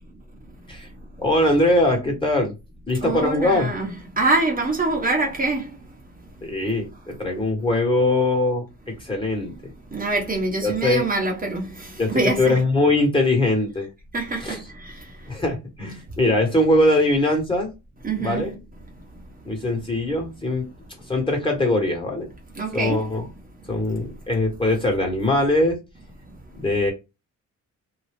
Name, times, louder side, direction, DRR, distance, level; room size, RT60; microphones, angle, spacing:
voice 1, 1.2-2.5 2.9-3.7 6.4-9.7 10.6-11.1 12.0-13.9 14.4-14.6 15.3-17.7 18.2-18.6 19.4-20.7 21.1-22.3 22.7-23.3 23.7-25.8 26.5-26.9, left 1 dB, 15° left, 1.4 m, -21 dB
voice 2, 3.0-3.9 4.2-5.7 9.9-11.9 12.1-12.5 14.1-14.9 18.0-18.4 22.6-23.0, right 2 dB, 30° right, 1.0 m, -24 dB
2.7 x 2.3 x 3.4 m
cardioid pair, 90°, 30 cm